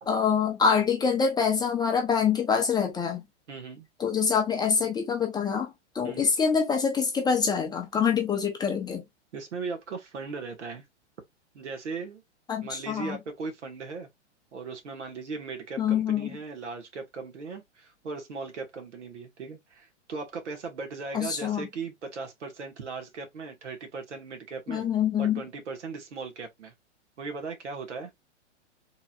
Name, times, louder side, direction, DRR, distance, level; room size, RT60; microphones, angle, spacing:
voice 1, 0.1-3.2 4.0-9.0 12.5-13.2 15.8-16.3 21.1-21.7 24.7-25.4, left 6 dB, 10° left, 0.7 m, -25 dB
voice 2, 3.5-3.9 6.0-6.3 9.3-10.9 11.5-12.2 12.6-14.1 14.5-24.8 25.2-26.7 27.2-28.1, right 4 dB, 75° right, 1.7 m, -38 dB
3.7 x 2.9 x 2.4 m
hypercardioid pair, 115°, 36 cm